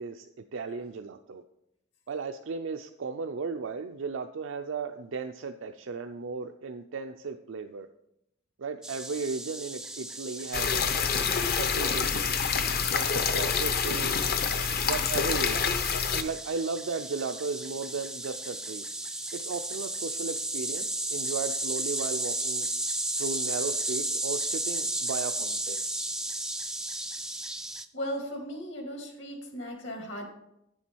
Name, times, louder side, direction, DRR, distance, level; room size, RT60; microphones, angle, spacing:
voice 1, 0.0-1.4 2.1-7.9 8.6-10.9 11.3-12.4 12.9-14.2 14.8-15.7 16.1-18.9 19.4-22.7 23.2-25.8, right 4 dB, 90° right, 7 dB, 0.5 m, -35 dB
sound 1, 8.8-27.8, right 2 dB, 5° right, 0.3 m, -34 dB
sound 2, 10.5-16.2, left 6 dB, 50° left, 0.7 m, -27 dB
voice 2, 27.9-30.3, equal, 70° left, 2 dB, 2.2 m, -36 dB
9.4 x 7.1 x 4.5 m, 0.81 s
head